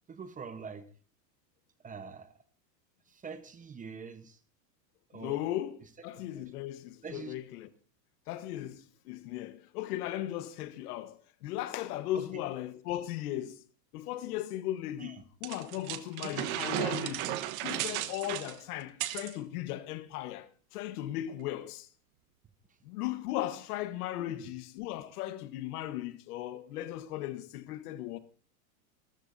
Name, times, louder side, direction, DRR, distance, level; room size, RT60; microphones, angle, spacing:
voice 1, 0.1-0.9 1.8-2.3 3.1-4.4 5.1-5.4 7.0-7.3 12.1-12.4 15.0-15.2 24.3-24.5, right 5 dB, 15° right, 1.0 m, -44 dB
voice 2, 5.1-7.7 8.3-13.6 13.9-21.9 22.8-28.2, left 13 dB, 65° left, 1.4 m, -37 dB
sound 1, 15.4-19.3, right 14 dB, 60° right, 1.3 m, -34 dB
27.5 x 13.5 x 2.7 m
supercardioid pair, 130°, 48 cm